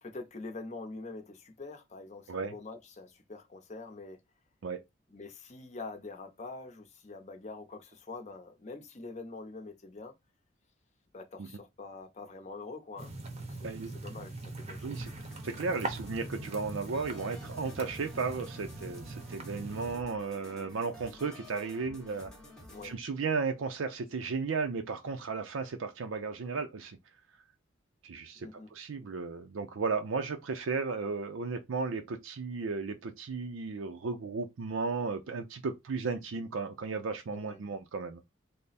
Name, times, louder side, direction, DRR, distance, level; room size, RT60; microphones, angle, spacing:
voice 1, 0.0-4.2 5.1-10.1 11.1-15.0 22.7-22.9 28.4-28.7 37.3-37.6, left 3 dB, 35° left, 0.7 m, -45 dB
sound 1, 13.0-20.0, right 2 dB, 30° right, 0.7 m, -41 dB
sound 2, 14.9-22.9, left 1 dB, 5° left, 0.7 m, -51 dB
voice 2, 15.4-22.3 22.8-27.0 28.0-38.2, right 4 dB, 80° right, 0.5 m, -35 dB
3.3 x 2.0 x 4.0 m
head